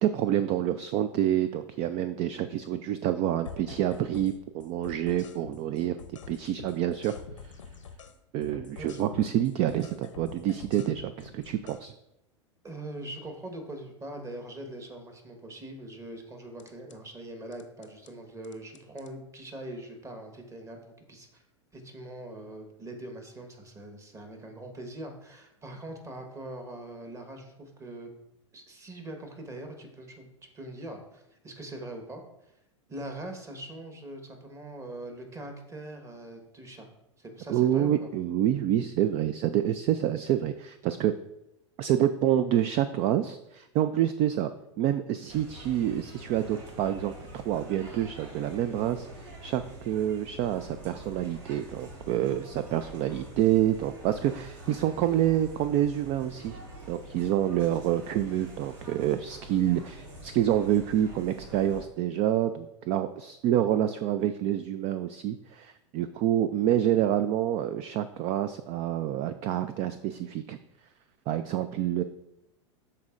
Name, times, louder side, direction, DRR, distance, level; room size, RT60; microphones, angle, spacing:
voice 1, 0.0-7.2 7.4-7.5 8.3-11.9 37.5-41.1 41.8-44.5 44.8-56.6 56.9-70.6 71.3-72.0, right 11 dB, 40° right, 11 dB, 0.4 m, -27 dB
sound 1, 3.4-4.3 4.6-8.2 8.4-11.8 16.6-17.0 17.5-18.1 18.4-19.1, left 5 dB, 85° left, 0.7 m, -46 dB
voice 2, 12.6-21.4 21.7-28.1 28.5-30.3 30.5-32.2 32.9-36.9 37.2-38.1, right 1 dB, 20° right, 4 dB, 1.3 m, -42 dB
sound 2, 45.3-61.8, right 2 dB, 60° right, 2.8 m, -46 dB
12.5 x 4.3 x 2.5 m, 0.86 s
hypercardioid pair, 95°, 16 cm